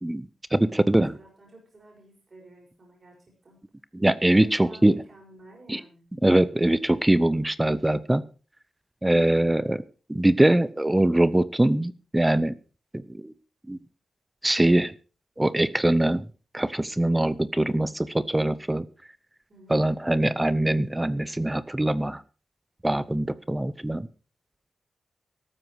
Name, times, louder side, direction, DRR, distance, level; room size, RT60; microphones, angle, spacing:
voice 1, 0.0-1.1 3.9-5.0 5.7-5.8 6.2-8.2 9.0-9.8 10.1-12.5 12.9-13.3 13.7-13.8 14.4-14.9 15.4-16.2 16.5-18.9 19.7-22.2 22.8-24.1, right 1 dB, 10° right, 16 dB, 0.7 m, -22 dB
voice 2, 0.9-3.6 4.3-6.1 19.5-19.8, right 1 dB, 35° right, -1 dB, 5.6 m, -51 dB
13.5 x 13.0 x 4.7 m, 0.37 s
wide cardioid pair, 120°, 0 cm